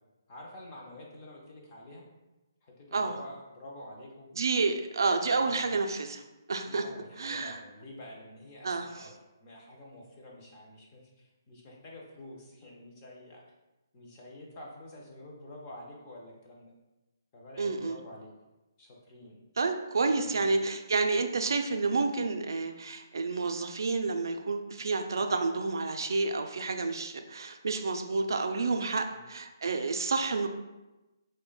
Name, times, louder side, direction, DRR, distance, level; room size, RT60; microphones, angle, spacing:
voice 1, 0.3-2.1 2.6-4.3 5.4-5.7 6.7-9.1 9.4-13.4 13.9-16.7 17.3-18.3 18.8-19.4 20.2-20.6 29.1-29.3, left 1 dB, 20° left, -2 dB, 0.4 m, -48 dB
voice 2, 4.3-6.2 6.5-6.8 7.2-7.6 8.6-9.1 17.6-18.0 19.6-30.5, right 3 dB, 70° right, 5 dB, 0.3 m, -29 dB
3.2 x 2.1 x 3.7 m, 1.1 s
hypercardioid pair, 175°, 2 cm